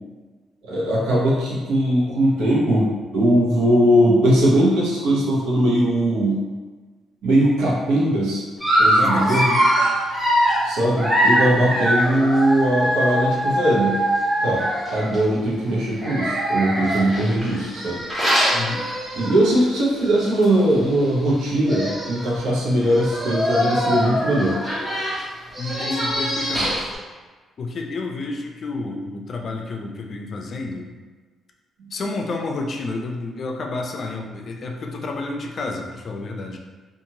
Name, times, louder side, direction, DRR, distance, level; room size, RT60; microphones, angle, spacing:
voice 1, 0.6-6.4 7.2-8.4 8.8-9.5 10.6-13.9 14.4-18.0 19.1-24.6 31.8-31.9, right 1 dB, 85° right, -5 dB, 0.9 m, -20 dB
Dog, 8.6-15.2 16.0-19.6 20.0-20.2 20.4-20.5 21.4-21.5 21.7-22.2 22.9-27.0, equal, 20° right, 1.0 m, -22 dB
voice 2, 8.9-9.7 11.5-11.8 18.5-18.9 25.6-26.9 27.6-30.9 31.9-36.6, left 3 dB, 50° left, 2 dB, 0.4 m, -30 dB
2.9 x 2.5 x 2.7 m, 1.4 s
cardioid pair, 90°, 0 cm